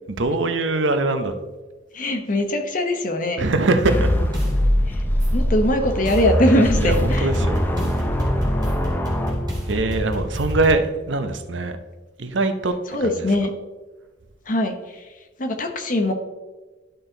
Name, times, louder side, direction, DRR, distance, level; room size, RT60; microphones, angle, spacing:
voice 1, 0.2-1.3 3.4-4.1 6.8-7.6 9.7-11.8 12.2-12.7 13.0-13.2, right 2 dB, 80° right, 8 dB, 0.7 m, -22 dB
voice 2, 1.9-3.5 5.3-7.3 12.9-13.5 14.5-14.7 15.4-16.1, left 1 dB, 45° left, 5 dB, 0.9 m, -21 dB
sound 1, 3.8-10.0, equal, 10° left, 0.6 m, -22 dB
sound 2, 4.3-4.5 5.2-5.3 6.1-6.2 6.9-10.7, equal, 20° right, 2.3 m, -28 dB
11.5 x 4.4 x 3.9 m, 1.2 s
head